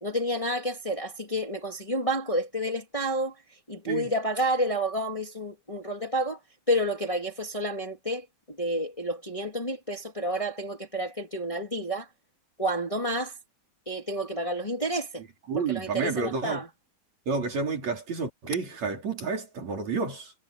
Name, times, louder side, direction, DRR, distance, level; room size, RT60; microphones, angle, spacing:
voice 1, 0.0-3.3 3.7-6.4 6.7-12.1 12.6-13.3 13.9-15.2 15.6-16.7, equal, 10° left, 2.6 m, -30 dB
voice 2, 15.5-16.6 17.3-20.3, right 4 dB, 65° right, 5.6 m, -30 dB
omnidirectional pair, 3.4 m